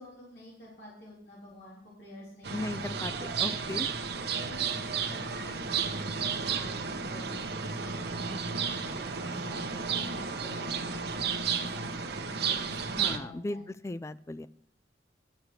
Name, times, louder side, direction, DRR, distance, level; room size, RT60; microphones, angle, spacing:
voice 1, 0.0-3.2 4.2-13.6, left 1 dB, 60° left, -6 dB, 3.6 m, -48 dB
sound 1, 2.4-13.2, right 6 dB, 60° right, 1.0 m, -33 dB
voice 2, 2.5-3.1 3.4-3.9 13.0-13.6 13.8-14.5, left 2 dB, 15° left, 14 dB, 0.3 m, -36 dB
11.5 x 7.9 x 4.8 m, 0.62 s
head